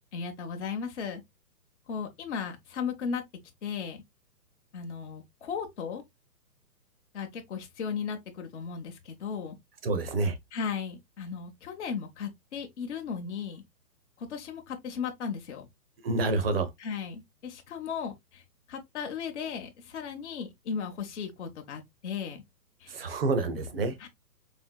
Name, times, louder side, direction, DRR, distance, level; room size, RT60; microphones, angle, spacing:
voice 1, 0.1-1.2 1.9-3.2 3.6-4.0 4.7-6.0 7.1-9.6 10.5-13.6 14.2-15.7 16.8-22.4 22.8-23.0 24.0-24.1, left 6 dB, 45° left, 0.7 m, -36 dB
voice 2, 9.8-10.4 16.0-16.7 22.9-24.0, right 3 dB, 35° right, 0.6 m, -28 dB
4.3 x 2.6 x 2.2 m
hypercardioid pair, 140°, 50 cm